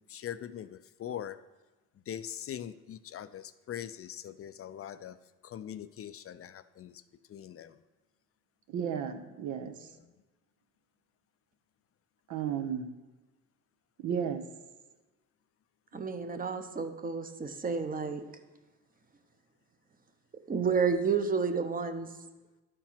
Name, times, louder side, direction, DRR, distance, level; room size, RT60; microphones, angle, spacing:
voice 1, 0.1-1.4 2.1-5.2 5.4-7.0 7.3-7.8, left 10 dB, 50° left, 13 dB, 0.4 m, -42 dB
voice 2, 8.7-9.9 12.3-12.9 14.0-14.4, right 8 dB, 75° right, 7 dB, 0.9 m, -33 dB
voice 3, 15.9-18.2 20.5-22.1, right 5 dB, 30° right, 8 dB, 0.8 m, -30 dB
12.0 x 4.5 x 5.7 m, 1.1 s
cardioid pair, 90°, 30 cm